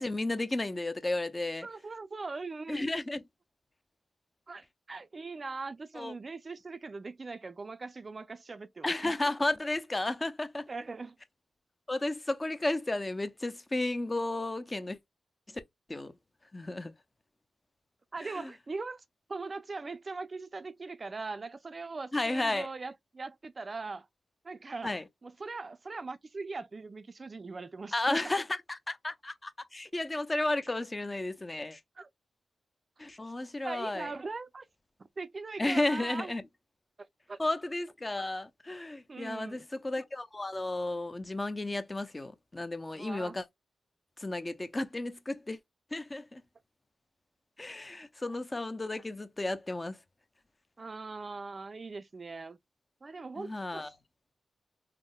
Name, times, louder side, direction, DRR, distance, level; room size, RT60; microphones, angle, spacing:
voice 1, 0.0-1.7 2.7-3.2 6.0-6.1 8.8-10.7 11.9-15.0 15.5-15.6 15.9-16.1 16.5-16.9 18.2-18.5 22.1-22.7 24.8-25.0 27.9-31.8 33.0-34.1 35.6-36.4 37.4-43.4 44.2-45.6 45.9-46.4 47.6-50.0 53.4-53.9, left 2 dB, 30° left, 0.5 m, -33 dB
voice 2, 1.6-2.9 4.5-9.1 10.7-11.1 18.1-19.0 19.3-24.1 24.4-24.9 25.2-28.3 32.0-32.1 33.6-34.7 35.2-36.3 37.3-37.4 39.1-39.6 42.9-43.4 50.8-52.6 53.0-53.9, right 3 dB, 45° right, 0.4 m, -40 dB
3.6 x 2.0 x 2.3 m
cardioid pair, 55°, 0 cm